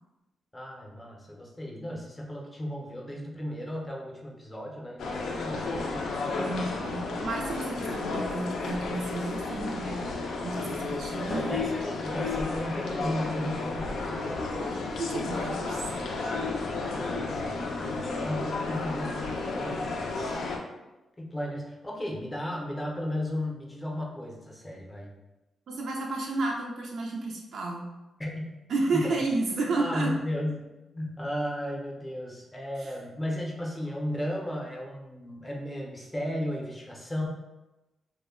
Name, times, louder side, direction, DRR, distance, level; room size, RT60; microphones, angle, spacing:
voice 1, 0.5-6.1 11.1-14.5 16.7-20.5 21.2-25.1 28.2-28.5 28.9-29.2 29.7-37.3, left 1 dB, 15° left, -1 dB, 0.5 m, -35 dB
sound 1, 5.0-20.6, left 3 dB, 75° left, 0.4 m, -32 dB
voice 2, 6.4-10.1 10.4-11.5 15.0-15.8 25.7-27.9 28.7-30.1 32.8-32.9, right 2 dB, 70° right, -1 dB, 0.4 m, -31 dB
2.1 x 2.1 x 3.5 m, 1.0 s
cardioid pair, 105°, 0 cm